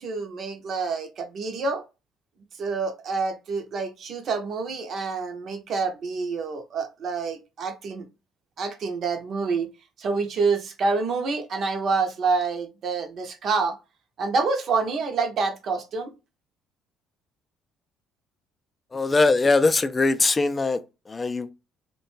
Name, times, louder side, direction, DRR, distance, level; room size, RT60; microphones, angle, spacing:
voice 1, 0.0-1.8 2.6-8.0 8.6-9.7 10.0-13.8 14.2-16.1, right 4 dB, 55° right, 0.6 m, -27 dB
voice 2, 18.9-20.8 21.1-21.5, left 3 dB, 25° left, 0.3 m, -21 dB
2.4 x 2.2 x 3.0 m
supercardioid pair, 80°, 0 cm